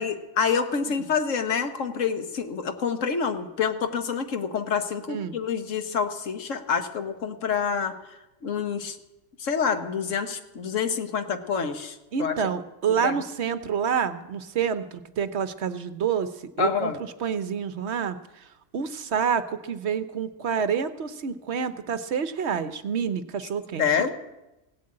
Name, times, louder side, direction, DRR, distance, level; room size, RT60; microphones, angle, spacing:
voice 1, 0.0-7.9 8.4-9.0 9.4-12.3 13.0-13.2 16.6-17.0 23.8-24.1, left 6 dB, 70° left, 8 dB, 1.5 m, -27 dB
voice 2, 12.1-16.3 16.6-16.9 17.2-18.5 18.7-23.8, right 7 dB, 60° right, 13 dB, 0.9 m, -28 dB
16.5 x 7.7 x 8.6 m, 0.98 s
omnidirectional pair, 1.4 m